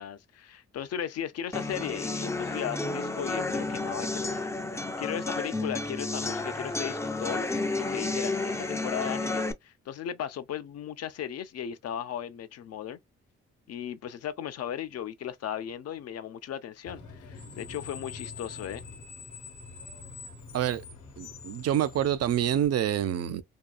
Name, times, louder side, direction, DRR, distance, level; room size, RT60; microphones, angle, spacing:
voice 1, 0.0-4.5 5.0-13.0 13.7-18.8, left 9 dB, 60° left, 0.5 m, -36 dB
sound 1, 1.5-9.5, left 2 dB, 10° left, 0.4 m, -31 dB
Screech, 16.9-22.7, left 5 dB, 80° left, 1.1 m, -45 dB
voice 2, 21.2-23.4, right 10 dB, 55° right, 0.5 m, -27 dB
2.7 x 2.3 x 2.2 m
supercardioid pair, 60°, 29 cm